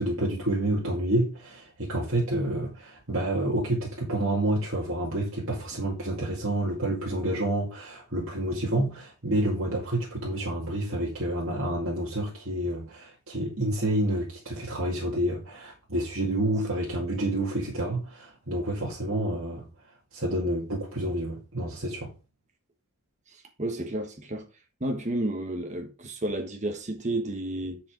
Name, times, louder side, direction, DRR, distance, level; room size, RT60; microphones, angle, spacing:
voice 1, 0.0-19.7 20.1-22.1, right 1 dB, 60° right, 2.3 m, -29 dB
voice 2, 23.3-24.5 24.8-27.8, right 1 dB, 30° right, 1.1 m, -31 dB
10.0 x 5.0 x 3.8 m
head